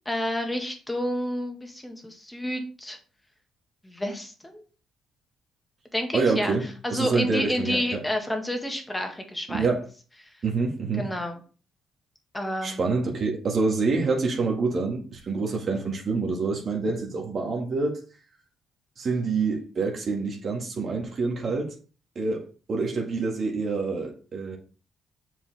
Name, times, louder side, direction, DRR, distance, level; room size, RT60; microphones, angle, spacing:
voice 1, 0.0-3.0 3.8-4.6 5.9-6.5 6.8-9.7 11.0-11.4 12.3-12.8, left 1 dB, 10° left, 1.7 m, -29 dB
voice 2, 6.1-8.0 9.5-9.8 10.4-11.1 12.6-18.0 19.0-21.7 22.2-22.4 22.7-24.6, right 4 dB, 50° right, 1.8 m, -27 dB
7.0 x 4.8 x 3.5 m
cardioid pair, 90°, 0 cm